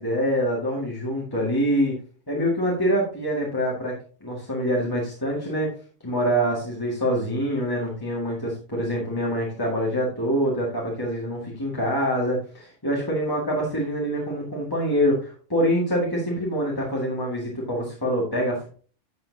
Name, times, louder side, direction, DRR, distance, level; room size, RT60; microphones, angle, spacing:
voice 1, 0.0-2.0 2.3-5.7 6.0-18.7, equal, 15° left, -4 dB, 2.0 m, -25 dB
10.0 x 7.5 x 2.8 m, 0.40 s
omnidirectional pair, 1.3 m